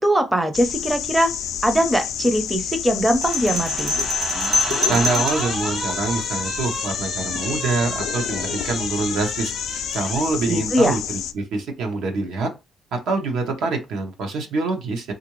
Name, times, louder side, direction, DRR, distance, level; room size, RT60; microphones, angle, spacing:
voice 1, 0.0-1.3 1.6-3.9 10.5-11.0, equal, 10° right, 0.5 m, -21 dB
sound 1, 0.5-11.3, left 9 dB, 90° left, 0.3 m, -29 dB
sound 2, 3.1-5.5, left 2 dB, 65° right, 1.4 m, -25 dB
sound 3, 3.2-10.3, right 2 dB, 50° right, 1.0 m, -32 dB
voice 2, 4.9-12.5 12.9-15.1, right 3 dB, 90° right, 0.9 m, -25 dB
3.6 x 2.5 x 3.0 m
cardioid pair, 130°, 0 cm